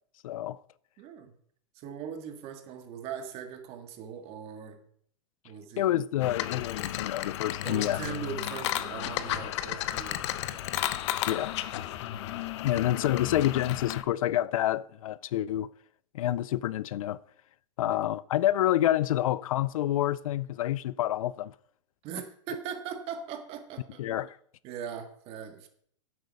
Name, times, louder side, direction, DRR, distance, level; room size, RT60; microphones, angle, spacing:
voice 1, 0.2-0.6 5.8-8.0 11.3-11.5 12.6-15.7 16.1-17.2 17.8-21.5 24.0-24.4, left 13 dB, 75° left, 0.5 m, -28 dB
voice 2, 1.0-1.3 1.7-4.8 5.4-5.9 7.6-11.4 12.7-12.8 17.8-18.0 22.0-24.0 24.6-25.7, right 8 dB, 35° right, 1.8 m, -40 dB
sound 1, 6.2-14.0, left 13 dB, 55° left, 0.8 m, -33 dB
10.0 x 8.1 x 5.3 m
supercardioid pair, 150°, 18 cm